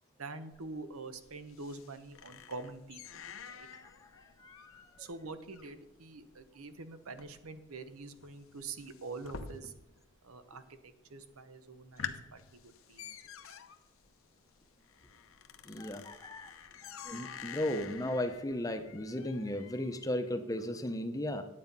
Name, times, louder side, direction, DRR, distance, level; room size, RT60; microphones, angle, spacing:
voice 1, 0.2-3.7 5.0-9.7 10.2-10.6 11.1-13.2, right 3 dB, 90° right, 11 dB, 0.9 m, -45 dB
sound 1, 0.5-10.1 10.3-10.9 11.3-11.4 11.8-20.1, left 6 dB, 75° left, 0.8 m, -49 dB
voice 2, 4.4-4.9 15.6-16.5 16.8-21.4, left 1 dB, 15° left, 8 dB, 0.7 m, -36 dB
9.6 x 8.6 x 5.3 m, 0.87 s
head